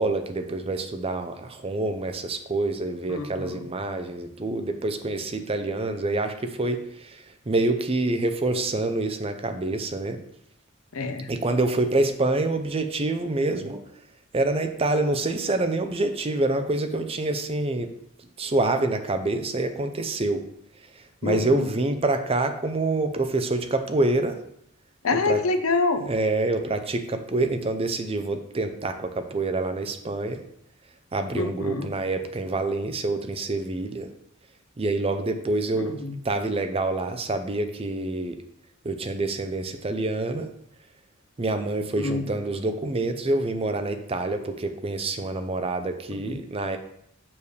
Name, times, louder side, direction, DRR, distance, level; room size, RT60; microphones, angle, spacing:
voice 1, 0.0-7.2 7.5-10.2 11.3-13.8 14.3-17.9 18.4-20.4 21.2-24.4 25.3-25.4 26.1-30.4 31.1-34.1 34.8-36.0 36.2-38.4 38.8-40.5 41.4-46.8, right 2 dB, 30° right, 7 dB, 0.6 m, -26 dB
voice 2, 3.1-3.7 10.9-11.3 21.2-21.7 25.0-26.1 31.3-31.9 35.8-36.1 42.0-42.3 46.1-46.4, left 3 dB, 80° left, 7 dB, 0.8 m, -27 dB
6.9 x 6.8 x 3.4 m, 0.73 s
head